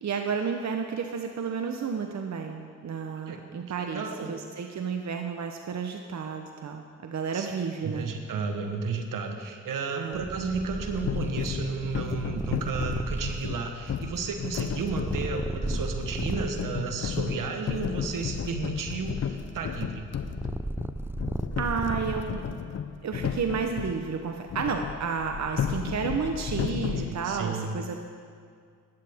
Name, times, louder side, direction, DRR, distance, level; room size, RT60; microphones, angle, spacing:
voice 1, 0.0-8.1 10.0-10.2 21.6-22.4 23.0-27.9, right 6 dB, 55° right, 4 dB, 1.0 m, -31 dB
voice 2, 3.8-4.4 7.3-7.5 7.8-20.1 27.1-27.8, right 5 dB, 75° right, 5 dB, 1.4 m, -33 dB
Purr, 10.1-16.7 17.3-22.6, right 2 dB, 5° right, 0.4 m, -36 dB
sound 1, 11.0-24.0 24.5-27.1, left 7 dB, 50° left, 0.8 m, -33 dB
15.5 x 12.0 x 3.7 m, 2.2 s
supercardioid pair, 50°, 32 cm